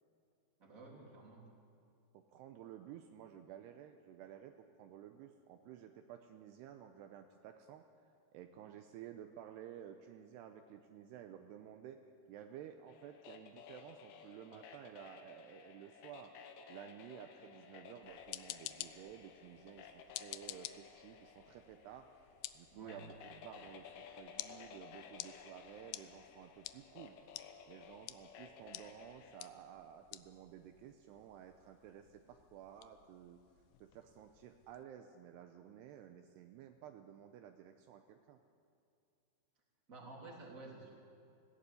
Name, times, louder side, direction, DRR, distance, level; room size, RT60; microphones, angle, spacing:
voice 1, 0.6-1.5 22.7-23.0 39.9-40.9, right 3 dB, 20° right, -2 dB, 3.1 m, -52 dB
voice 2, 2.1-7.9 8.3-12.0 12.3-16.3 16.7-22.1 22.5-27.2 27.7-33.4 33.8-38.4, right 10 dB, 80° right, 6 dB, 2.7 m, -53 dB
sound 1, 12.9-29.5, left 7 dB, 70° left, 2.9 m, -56 dB
sound 2, 18.0-34.8, left 15 dB, 90° left, 2.1 m, -52 dB
19.0 x 16.5 x 8.4 m, 2.6 s
omnidirectional pair, 5.1 m